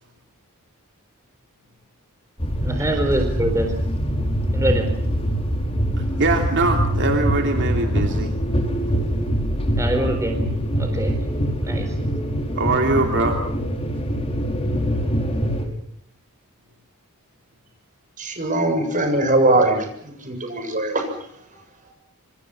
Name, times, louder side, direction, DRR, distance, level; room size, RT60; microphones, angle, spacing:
sound 1, 2.4-15.6, equal, 25° left, 5.1 m, -23 dB
voice 1, 2.6-3.7 4.5-4.9 9.8-10.4 10.8-11.2 11.6-11.9, right 1 dB, 15° right, 4 dB, 4.1 m, -24 dB
voice 2, 6.0-8.3 12.6-13.4, right 2 dB, 55° right, 3 dB, 2.9 m, -22 dB
voice 3, 18.2-21.1 21.9-22.0, right 2 dB, 35° right, 5 dB, 7.4 m, -21 dB
27.0 x 26.5 x 6.0 m, 0.68 s
head